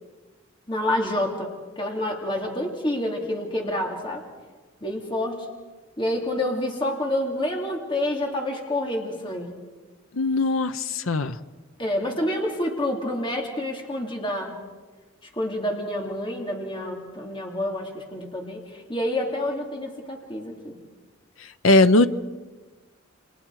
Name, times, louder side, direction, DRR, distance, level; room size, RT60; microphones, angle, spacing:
voice 1, 0.7-4.2 4.8-5.5 6.0-9.5 11.8-14.6 15.4-20.8, left 1 dB, 25° left, 0 dB, 2.8 m, -28 dB
voice 2, 10.2-11.3 21.6-22.1, left 2 dB, 85° left, 10 dB, 0.9 m, -19 dB
29.0 x 27.5 x 4.8 m, 1.3 s
head